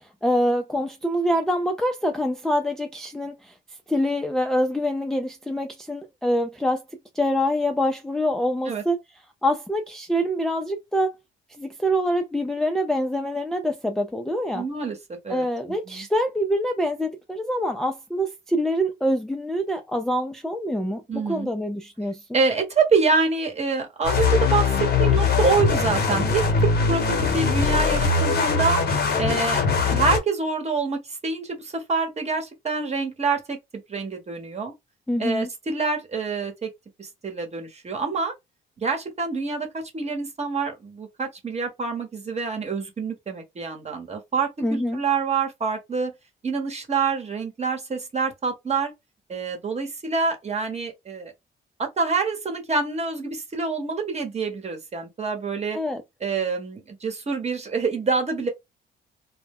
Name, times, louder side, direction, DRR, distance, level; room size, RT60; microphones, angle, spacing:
voice 1, 0.0-3.5 3.9-6.8 7.1-9.0 9.4-11.1 11.6-14.6 15.3-21.0 21.3-22.2 35.1-35.5 44.6-45.0 55.7-56.0, equal, ahead, 0.4 m, -25 dB
voice 2, 14.5-16.1 21.1-21.5 22.3-28.8 29.2-29.6 29.9-33.6 33.9-34.7 35.2-36.7 37.0-38.3 38.8-46.1 46.4-48.9 49.3-51.3 51.8-55.8 56.2-58.5, right 4 dB, 35° right, 1.0 m, -26 dB
sound 1, 24.0-30.2, left 5 dB, 55° left, 0.9 m, -21 dB
2.1 x 2.1 x 3.5 m
cardioid pair, 90°, 20 cm